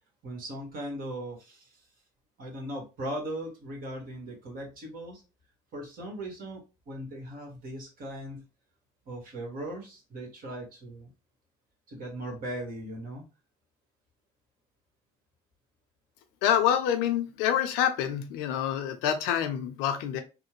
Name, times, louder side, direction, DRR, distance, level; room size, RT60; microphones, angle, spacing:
voice 1, 0.2-1.8 2.4-5.2 5.7-8.4 9.1-11.1 11.9-13.2, right 1 dB, 60° right, 1 dB, 1.5 m, -38 dB
voice 2, 16.4-20.2, left 9 dB, 80° left, 7 dB, 0.6 m, -27 dB
3.2 x 2.1 x 3.0 m, 0.29 s
hypercardioid pair, 60°, 16 cm